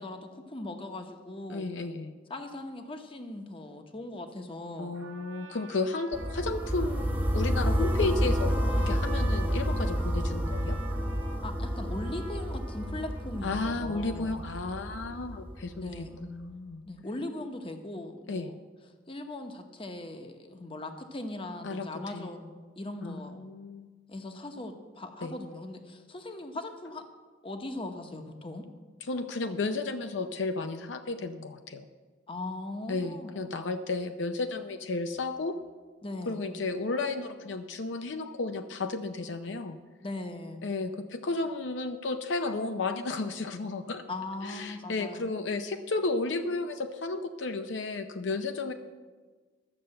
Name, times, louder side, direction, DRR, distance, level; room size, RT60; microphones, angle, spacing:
voice 1, 0.0-1.7 2.3-5.0 11.4-14.4 15.8-16.2 16.8-18.6 19.1-23.5 24.1-27.0 27.4-28.7 32.3-33.5 36.0-36.5 40.0-40.6 44.1-45.3, left 2 dB, 30° left, 6 dB, 1.0 m, -39 dB
voice 2, 1.5-2.1 4.8-7.1 7.3-10.8 13.4-16.8 18.3-18.5 21.6-21.9 22.1-22.3 23.0-23.9 25.2-25.3 29.0-31.8 32.9-35.6 36.3-39.8 40.6-44.0 44.4-48.7, left 3 dB, 65° left, 7 dB, 0.6 m, -33 dB
Trumpet, 4.9-13.4, right 1 dB, 85° right, 1.1 m, -46 dB
sound 1, 6.1-16.1, equal, 10° right, 0.9 m, -30 dB
12.0 x 6.8 x 7.7 m, 1.4 s
head